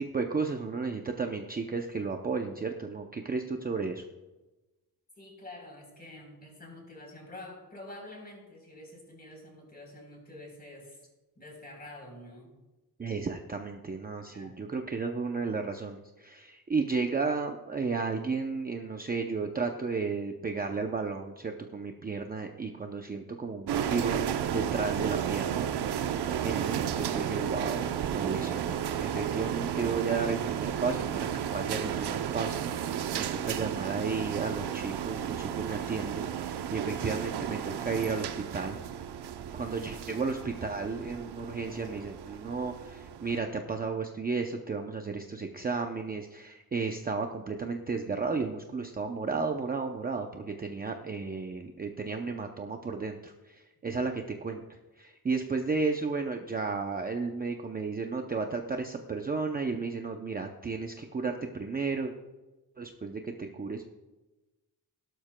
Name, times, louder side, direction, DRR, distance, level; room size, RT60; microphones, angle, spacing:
voice 1, 0.0-4.0 13.0-25.7 26.1-38.8 39.5-62.1 62.8-63.8, right 4 dB, 25° right, 4 dB, 0.5 m, -33 dB
voice 2, 5.2-11.0 11.4-12.5 14.3-14.6, left 1 dB, 25° left, 0 dB, 3.7 m, -47 dB
sound 1, 23.7-43.4, right 9 dB, 80° right, 0.7 m, -33 dB
17.5 x 12.0 x 2.2 m, 1.1 s
wide cardioid pair, 175°, 39 cm